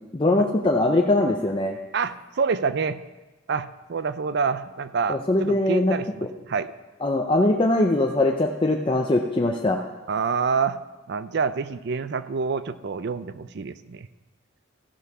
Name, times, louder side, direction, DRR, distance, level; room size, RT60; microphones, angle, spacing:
voice 1, 0.1-1.8 5.1-5.9 7.0-9.8, left 2 dB, 25° left, 1 dB, 0.5 m, -21 dB
voice 2, 1.9-3.0 3.5-6.7 10.1-10.8 11.1-14.1, right 5 dB, 55° right, 14 dB, 0.4 m, -27 dB
15.0 x 5.6 x 6.0 m, 1.2 s
head